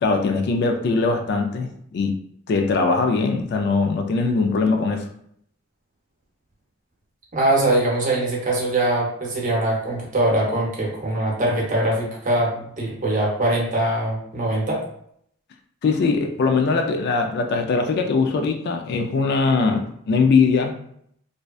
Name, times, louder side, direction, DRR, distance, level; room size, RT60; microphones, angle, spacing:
voice 1, 0.0-2.2 2.5-5.1 15.8-20.7, left 4 dB, 55° left, 5 dB, 0.3 m, -21 dB
voice 2, 7.3-14.8, right 1 dB, 40° right, -3 dB, 0.7 m, -22 dB
2.6 x 2.1 x 2.3 m, 0.69 s
head